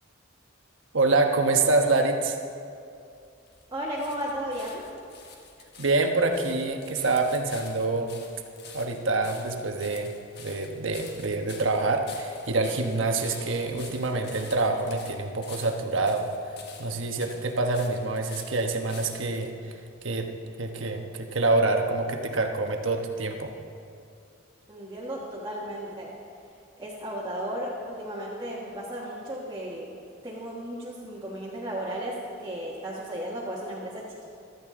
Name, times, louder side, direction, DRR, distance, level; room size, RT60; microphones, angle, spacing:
voice 1, 0.9-2.4 5.8-8.1 8.7-10.1 10.4-16.3 16.8-19.5 20.0-20.3 20.6-23.5, right 3 dB, 75° right, 4 dB, 1.2 m, -26 dB
sound 1, 2.9-19.5 20.2-20.3, left 5 dB, 55° left, 1.4 m, -48 dB
voice 2, 3.7-4.8 24.7-26.1 26.8-29.9 30.2-34.3, equal, 20° right, -6 dB, 1.4 m, -34 dB
15.5 x 12.5 x 3.8 m, 2.5 s
head